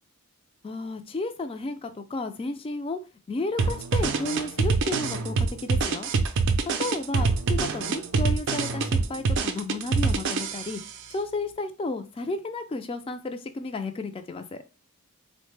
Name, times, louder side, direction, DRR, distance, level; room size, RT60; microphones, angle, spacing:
voice 1, 0.6-3.0 3.3-6.1 6.8-10.8 11.1-14.6, left 2 dB, 25° left, 8 dB, 0.3 m, -32 dB
sound 1, 3.6-10.9, right 4 dB, 60° right, 0.4 m, -25 dB
3.5 x 2.1 x 3.1 m, 0.31 s
head